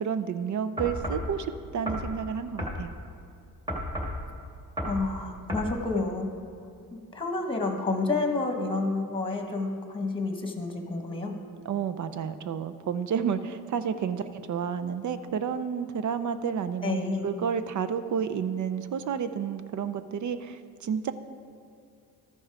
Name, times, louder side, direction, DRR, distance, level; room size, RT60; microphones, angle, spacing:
voice 1, 0.0-2.9 11.6-21.1, right 7 dB, 55° right, 11 dB, 0.5 m, -31 dB
sound 1, 0.8-1.3 1.9-2.1 2.6-2.8 3.7-4.2 4.8-5.0 5.5-5.7, equal, 10° right, 1.8 m, -32 dB
voice 2, 4.9-6.3 7.1-11.4 16.8-17.3, left 3 dB, 15° left, 3 dB, 1.2 m, -29 dB
13.5 x 5.3 x 4.8 m, 2.5 s
cardioid pair, 105°, 37 cm